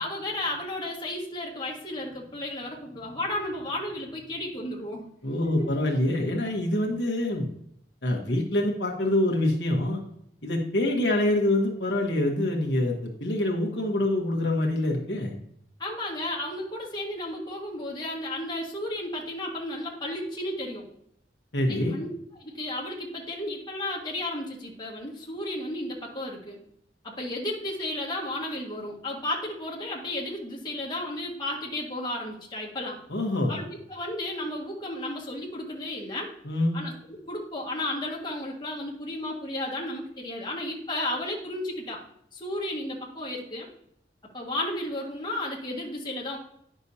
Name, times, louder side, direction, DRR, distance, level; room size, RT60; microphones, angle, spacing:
voice 1, 0.0-5.1 5.4-5.7 15.8-20.9 21.7-22.1 22.4-26.6 27.0-33.0 33.5-36.3 36.7-36.9 37.2-42.0 42.3-43.7 44.3-46.4, left 1 dB, 25° left, -3 dB, 1.7 m, -33 dB
voice 2, 5.2-7.5 8.0-10.0 10.4-15.4 21.5-22.0 33.1-33.6 36.4-36.8, left 1 dB, 70° left, 0 dB, 1.3 m, -25 dB
9.6 x 6.1 x 2.8 m, 0.71 s
head